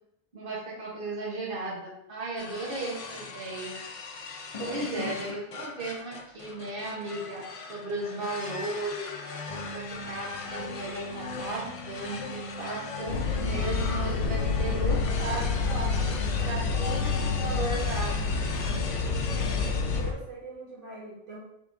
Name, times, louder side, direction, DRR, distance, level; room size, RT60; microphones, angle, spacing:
voice 1, 0.3-3.7 4.6-18.2, right 2 dB, 50° right, -5 dB, 1.3 m, -36 dB
sound 1, 2.4-20.0, left 4 dB, 55° left, 0.3 m, -39 dB
sound 2, 9.5-17.8, right 3 dB, 30° left, 1.1 m, -43 dB
sound 3, 13.1-20.1, left 5 dB, 80° left, 0.9 m, -28 dB
voice 2, 19.2-21.4, right 3 dB, 85° right, -7 dB, 2.0 m, -43 dB
5.7 x 3.6 x 2.6 m, 0.80 s
omnidirectional pair, 1.2 m